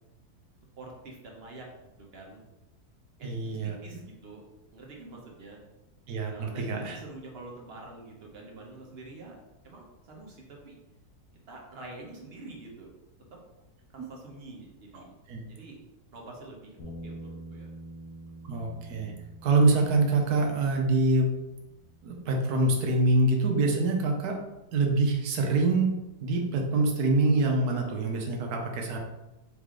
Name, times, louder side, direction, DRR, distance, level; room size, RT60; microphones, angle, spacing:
voice 1, 0.8-1.7 2.0-2.4 3.2-4.4 4.7-5.6 6.3-9.4 9.6-10.8 11.5-12.9 13.2-13.4 13.9-15.2 15.5-15.8 16.1-16.8 17.0-17.7, right 2 dB, 45° right, 0 dB, 1.0 m, -46 dB
voice 2, 3.2-4.0 6.1-7.0 14.0-14.1 15.3-15.4 18.4-19.1 19.4-21.3 22.0-24.4 24.7-29.0, right 2 dB, 80° right, 2 dB, 1.3 m, -25 dB
Bass guitar, 16.8-23.0, right 1 dB, 80° left, 1.4 m, -47 dB
4.1 x 3.4 x 3.7 m, 0.97 s
omnidirectional pair, 1.7 m